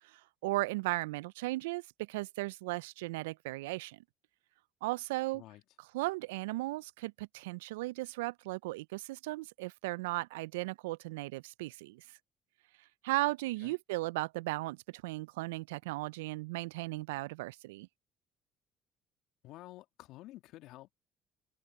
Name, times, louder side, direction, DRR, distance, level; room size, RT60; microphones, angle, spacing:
voice 1, 0.0-4.0 4.8-5.4 5.9-12.1 13.0-17.9, right 21 dB, 80° right, 0.5 m, -36 dB
voice 2, 19.4-20.9, left 17 dB, 65° left, 2.3 m, -51 dB
open air
hypercardioid pair, 60°, 0 cm